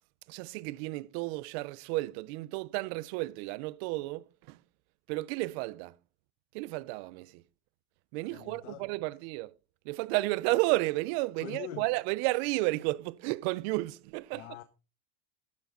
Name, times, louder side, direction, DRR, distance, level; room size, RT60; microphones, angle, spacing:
voice 1, 0.3-4.6 5.1-6.0 6.5-7.4 8.1-9.5 9.8-14.5, right 21 dB, 60° right, 0.8 m, -32 dB
voice 2, 8.3-8.8 11.4-11.9 14.3-14.6, left 13 dB, 80° left, 1.4 m, -43 dB
12.0 x 12.0 x 3.9 m
supercardioid pair, 140°, 36 cm